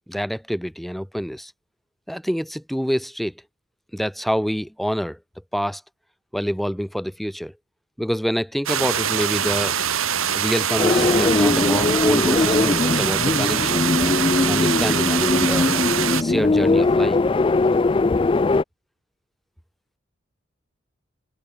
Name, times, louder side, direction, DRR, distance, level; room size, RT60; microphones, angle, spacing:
voice 1, 0.1-1.5 2.1-3.3 3.9-5.2 5.5-5.8 6.3-7.5 8.0-9.8 10.3-13.8 14.5-15.7 16.2-17.2, equal, ahead, 1.8 m, -26 dB
sound 1, 8.7-16.2, right 8 dB, 85° right, 2.4 m, -23 dB
sound 2, 10.8-18.6, left 3 dB, 25° left, 0.3 m, -20 dB
head